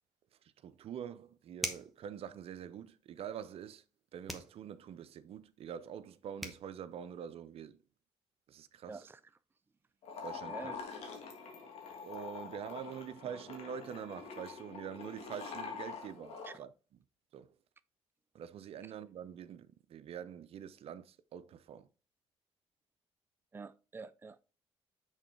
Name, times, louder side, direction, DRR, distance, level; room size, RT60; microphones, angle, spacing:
voice 1, 0.4-3.8 4.1-7.8 8.5-9.0 10.2-10.7 12.0-16.7 17.3-17.6 18.3-21.9, right 8 dB, 65° right, 0.6 m, -45 dB
sound 1, 1.6-2.0 4.3-4.5 6.1-6.2 6.4-6.6, equal, ahead, 1.3 m, -39 dB
voice 2, 8.9-9.2 10.5-10.8 16.4-16.6 23.5-24.4, right 4 dB, 20° right, 0.4 m, -47 dB
sound 2, 10.0-16.5, left 5 dB, 75° left, 1.7 m, -45 dB
6.5 x 3.8 x 4.7 m
cardioid pair, 75°, 11 cm